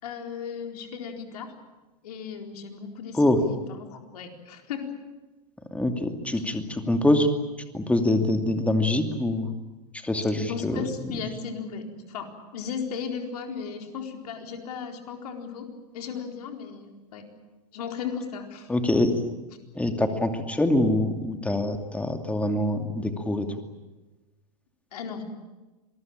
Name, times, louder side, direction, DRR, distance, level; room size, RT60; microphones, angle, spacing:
voice 1, 0.0-1.5 2.0-4.9 10.5-17.3 17.7-18.7 24.9-25.2, left 6 dB, 70° left, 4 dB, 4.3 m, -36 dB
voice 2, 5.7-7.3 7.7-9.5 9.9-11.1 18.7-19.1 19.7-23.5, left 1 dB, 5° left, 6 dB, 2.6 m, -24 dB
26.5 x 19.5 x 8.9 m, 1.1 s
hypercardioid pair, 105°, 21 cm